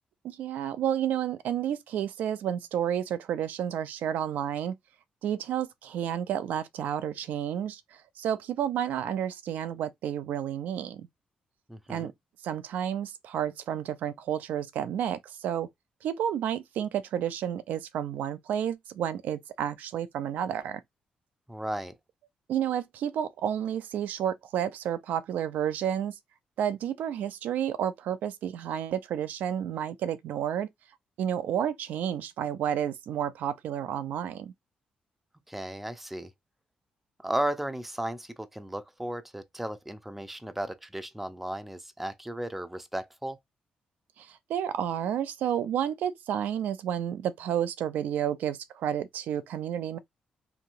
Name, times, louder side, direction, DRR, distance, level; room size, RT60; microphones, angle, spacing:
voice 1, 0.2-4.8 5.2-11.1 11.9-12.1 12.4-15.7 16.0-20.8 22.5-26.2 26.6-30.7 31.2-34.5 44.2-50.0, right 9 dB, 80° right, 0.4 m, -31 dB
voice 2, 11.7-12.1 21.5-21.9 35.5-36.3 37.2-43.4, right 1 dB, 5° right, 0.5 m, -35 dB
2.9 x 2.6 x 2.5 m
cardioid pair, 70°, 3 cm